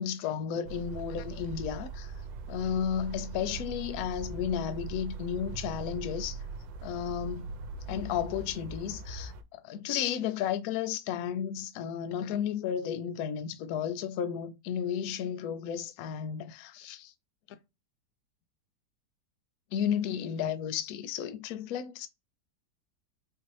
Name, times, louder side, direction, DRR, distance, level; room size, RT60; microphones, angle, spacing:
voice 1, 0.0-2.1 2.5-6.4 6.8-7.5 7.9-17.1 17.5-17.6 19.7-22.1, left 8 dB, 70° left, 0.9 m, -33 dB
sound 1, 0.6-9.4, right 4 dB, 85° right, 1.3 m, -41 dB
4.5 x 2.6 x 3.0 m
omnidirectional pair, 2.0 m